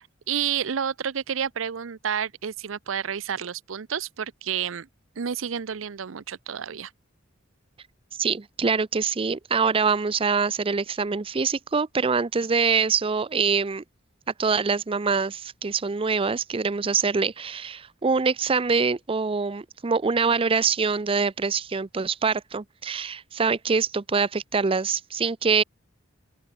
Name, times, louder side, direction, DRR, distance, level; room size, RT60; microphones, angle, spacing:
voice 1, 0.3-4.9 5.2-6.9, right 8 dB, 70° right, 0.6 m, -30 dB
voice 2, 8.2-13.8 14.4-25.6, right 5 dB, 25° right, 0.5 m, -24 dB
open air
head